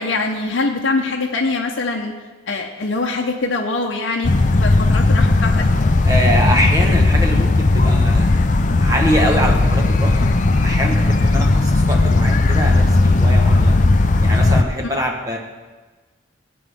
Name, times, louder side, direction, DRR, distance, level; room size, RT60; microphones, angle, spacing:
voice 1, 0.0-2.1 2.5-5.7 14.8-14.9, left 3 dB, 75° left, 0 dB, 0.7 m, -23 dB
sound 1, 4.2-14.6, left 2 dB, 40° left, 0.5 m, -15 dB
voice 2, 6.0-8.5 8.7-10.3 10.6-13.8 14.2-15.4, equal, 20° right, 1 dB, 1.2 m, -23 dB
15.5 x 8.5 x 3.5 m, 1.3 s
head